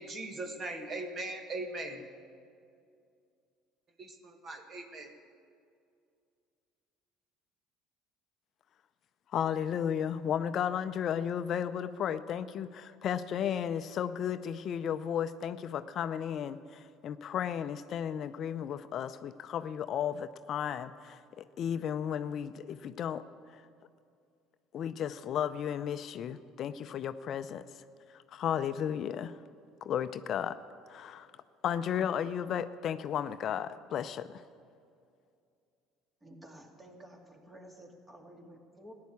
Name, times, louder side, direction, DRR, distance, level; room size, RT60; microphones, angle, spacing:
voice 1, 0.0-2.0 4.0-5.1, right 2 dB, 45° right, 5 dB, 1.7 m, -40 dB
voice 2, 9.3-23.2 24.7-27.6 28.3-29.3 29.8-30.6 30.9-31.3 31.6-34.3, left 9 dB, 55° left, 12 dB, 0.5 m, -34 dB
voice 3, 36.2-38.9, equal, 20° right, 2 dB, 2.7 m, -52 dB
14.5 x 10.5 x 8.4 m, 2.4 s
hypercardioid pair, 75°, 0 cm